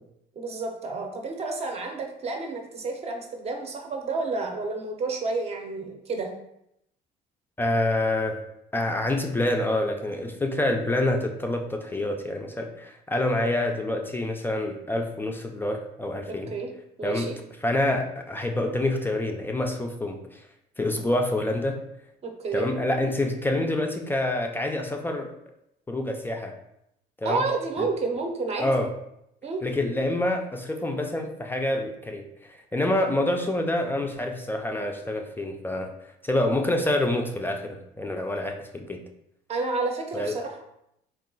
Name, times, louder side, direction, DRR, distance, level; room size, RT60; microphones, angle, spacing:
voice 1, 0.4-6.3 16.3-16.7 17.0-17.4 22.2-22.7 27.2-28.7 29.4-29.6 39.5-40.6, right 3 dB, 40° right, 3 dB, 0.7 m, -30 dB
voice 2, 7.6-8.4 8.7-16.5 17.0-17.3 17.6-20.4 20.8-21.8 22.5-25.3 25.9-26.5 27.2-27.4 27.8-27.9 28.6-28.9 29.6-35.9 36.2-39.0 40.1-40.3, left 1 dB, 10° left, 3 dB, 0.3 m, -27 dB
3.5 x 2.4 x 3.8 m, 0.78 s
cardioid pair, 110°, 17 cm